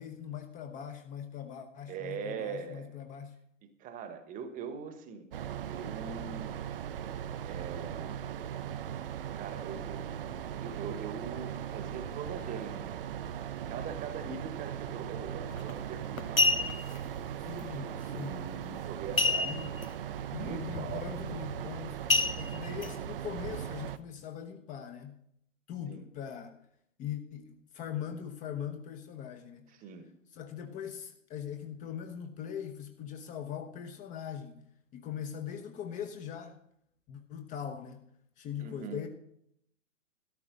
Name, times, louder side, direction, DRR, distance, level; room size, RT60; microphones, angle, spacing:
voice 1, 0.0-3.3 17.4-18.5 19.4-19.8 20.3-22.0 22.4-25.2 25.7-26.6 27.0-29.8 30.3-34.6 34.9-36.6 37.1-38.0 38.4-39.1, left 9 dB, 20° left, 6 dB, 1.0 m, -41 dB
voice 2, 1.9-2.9 3.6-5.3 5.6-6.6 7.4-8.2 9.3-13.1 13.7-16.8 17.4-19.7 20.3-21.1 25.9-26.1 29.8-30.1 38.6-39.0, right 6 dB, 20° right, 10 dB, 1.3 m, -42 dB
sound 1, 5.3-24.0, right 9 dB, 45° right, 0.7 m, -39 dB
sound 2, 15.5-15.7 16.2-17.0 19.2-19.8 20.2-20.3 20.7-21.0 22.1-22.9 23.5-23.6, left 3 dB, 85° left, 1.4 m, -27 dB
13.0 x 12.0 x 5.2 m, 0.73 s
figure-of-eight pair, 115°, 40 cm